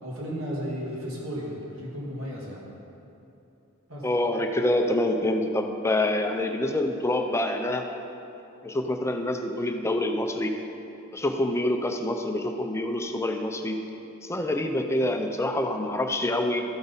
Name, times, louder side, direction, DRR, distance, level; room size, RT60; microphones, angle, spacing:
voice 1, 0.0-2.6 3.9-4.0, equal, 75° right, -4 dB, 1.9 m, -34 dB
voice 2, 4.0-7.9 8.6-10.5 11.1-13.8 14.2-16.6, left 1 dB, 15° left, 4 dB, 0.5 m, -26 dB
14.0 x 5.4 x 4.0 m, 2.9 s
head